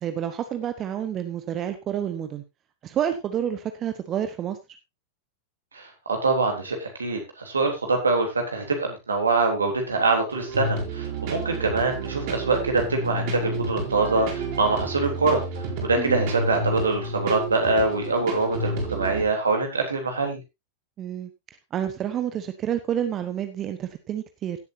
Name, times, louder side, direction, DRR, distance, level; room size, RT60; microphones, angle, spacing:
voice 1, 0.0-2.4 2.8-4.6 16.0-16.2 21.0-21.3 21.7-24.6, right 9 dB, 30° right, 8 dB, 1.2 m, -29 dB
voice 2, 5.7-15.4 15.8-20.4, right 3 dB, 75° right, 3 dB, 3.5 m, -24 dB
sound 1, 10.3-19.2, right 2 dB, 45° right, 5.0 m, -30 dB
17.0 x 8.1 x 2.8 m, 0.23 s
figure-of-eight pair, 90°, 0 cm